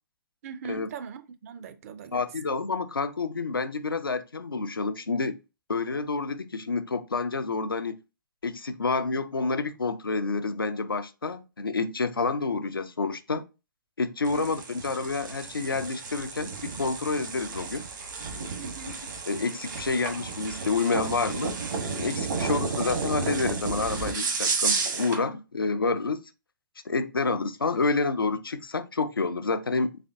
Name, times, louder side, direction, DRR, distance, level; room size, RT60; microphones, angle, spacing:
voice 1, 0.4-2.2 14.3-14.5 18.6-19.0 20.0-20.1 22.3-22.7, right 6 dB, 40° right, 0.5 m, -41 dB
voice 2, 2.1-5.4 5.7-8.0 8.4-13.4 14.0-17.8 18.8-19.0 19.3-21.6 22.0-26.2 26.9-29.9, left 4 dB, 85° left, 0.5 m, -28 dB
sound 1, 14.2-25.2, right 4 dB, 60° right, 1.1 m, -32 dB
4.1 x 3.4 x 2.6 m
figure-of-eight pair, 125°, 11 cm